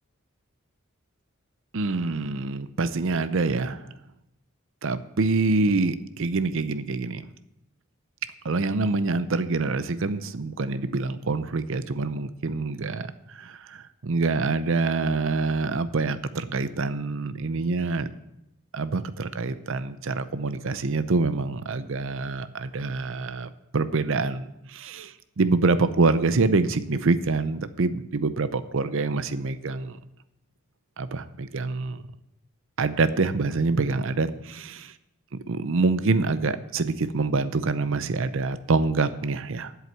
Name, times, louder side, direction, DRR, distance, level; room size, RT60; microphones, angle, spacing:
voice 1, 1.7-3.9 4.8-7.3 8.4-18.1 18.7-30.0 31.0-32.0 32.8-34.9 35.5-39.7, right 3 dB, 65° right, 13 dB, 0.6 m, -26 dB
8.1 x 7.8 x 8.0 m, 0.85 s
head